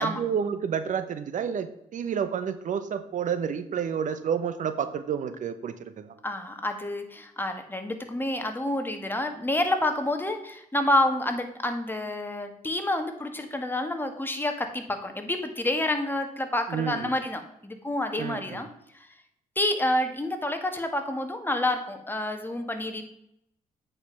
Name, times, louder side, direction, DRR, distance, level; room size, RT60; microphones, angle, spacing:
voice 1, 0.0-6.1 16.7-17.1 18.2-18.6, right 7 dB, 60° right, 11 dB, 0.8 m, -30 dB
voice 2, 6.2-18.7 19.5-23.0, left 1 dB, 15° left, 5 dB, 1.7 m, -28 dB
8.5 x 5.3 x 5.8 m, 0.76 s
supercardioid pair, 65°, 15 cm